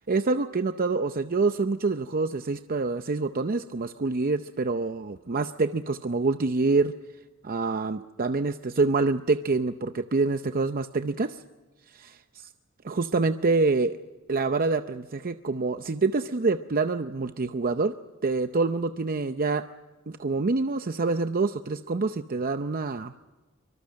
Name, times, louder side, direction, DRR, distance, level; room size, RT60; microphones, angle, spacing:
voice 1, 0.1-6.9 7.4-11.4 11.9-12.1 12.8-14.0 14.3-17.9 18.2-19.7 20.1-23.1, right 3 dB, 45° right, 9 dB, 0.6 m, -26 dB
24.5 x 24.5 x 6.4 m, 1.2 s
head